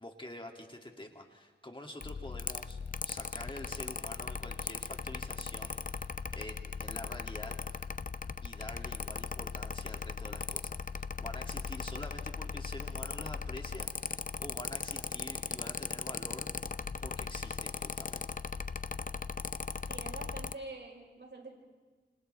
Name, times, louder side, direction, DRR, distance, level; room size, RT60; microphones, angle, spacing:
voice 1, 0.0-2.8 3.0-7.6 8.4-16.5 17.0-18.4, left 1 dB, 25° left, 2 dB, 2.5 m, -47 dB
Mechanical fan, 2.0-20.5, left 5 dB, 40° left, 0.6 m, -38 dB
voice 2, 19.9-21.6, right 2 dB, 65° right, -1 dB, 5.9 m, -46 dB
29.5 x 27.5 x 3.4 m, 1.4 s
wide cardioid pair, 60°, 20 cm